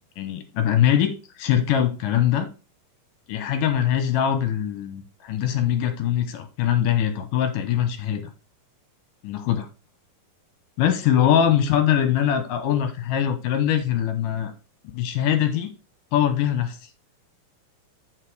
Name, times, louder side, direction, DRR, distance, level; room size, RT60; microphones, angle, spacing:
voice 1, 0.2-2.5 3.3-8.3 9.2-9.7 10.8-14.5 14.9-15.7 16.1-16.9, left 10 dB, 80° left, 8 dB, 2.5 m, -22 dB
9.4 x 5.0 x 4.7 m, 0.31 s
omnidirectional pair, 3.9 m